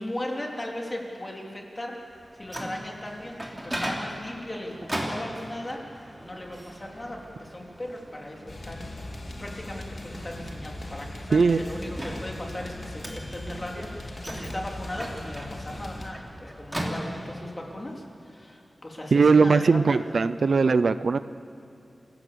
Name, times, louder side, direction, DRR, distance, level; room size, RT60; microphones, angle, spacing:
voice 1, 0.0-2.0 2.4-9.1 9.4-20.0, left 1 dB, 25° left, -1 dB, 3.6 m, -37 dB
Microwave oven, 2.1-17.6, equal, 10° right, 3.1 m, -39 dB
sound 1, 8.5-16.1, left 1 dB, 50° left, 2.2 m, -39 dB
voice 2, 11.3-11.6 19.1-21.2, right 4 dB, 80° right, 13 dB, 0.6 m, -20 dB
28.0 x 16.5 x 7.0 m, 2.8 s
wide cardioid pair, 105°, 0 cm